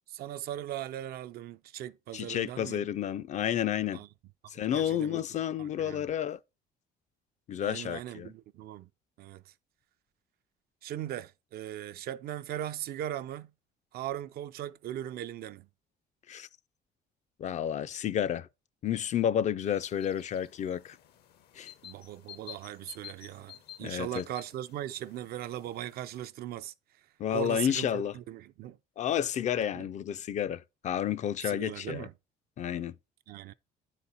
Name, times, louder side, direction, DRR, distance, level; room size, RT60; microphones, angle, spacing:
voice 1, 0.1-2.9 3.9-4.1 4.7-5.2 5.6-6.0 7.6-8.9 9.2-9.4 10.8-13.5 13.9-15.7 21.8-26.7 27.3-28.8 29.7-29.9 31.4-32.1 33.3-33.5, right 12 dB, 65° right, 0.4 m, -39 dB
voice 2, 2.1-4.0 4.5-6.4 7.5-8.3 16.3-16.5 17.4-18.5 18.8-21.0 21.5-21.7 23.8-24.2 27.2-28.2 29.0-32.1 32.6-33.0, left 10 dB, 45° left, 0.4 m, -31 dB
sound 1, 19.7-26.3, left 12 dB, 70° left, 0.8 m, -52 dB
9.6 x 4.1 x 4.1 m
cardioid pair, 110°, 17 cm